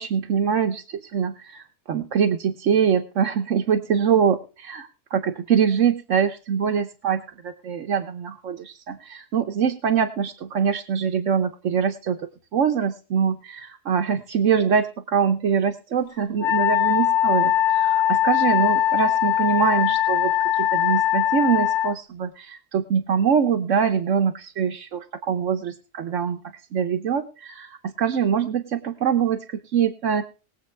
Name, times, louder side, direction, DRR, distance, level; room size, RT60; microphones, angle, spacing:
voice 1, 0.0-12.2 12.5-26.4 26.7-30.2, right 7 dB, 80° right, 5 dB, 1.3 m, -24 dB
Wind instrument woodwind instrument, 16.4-21.9, left 11 dB, 75° left, 1.1 m, -21 dB
21.0 x 7.9 x 3.3 m, 0.36 s
omnidirectional pair, 1.3 m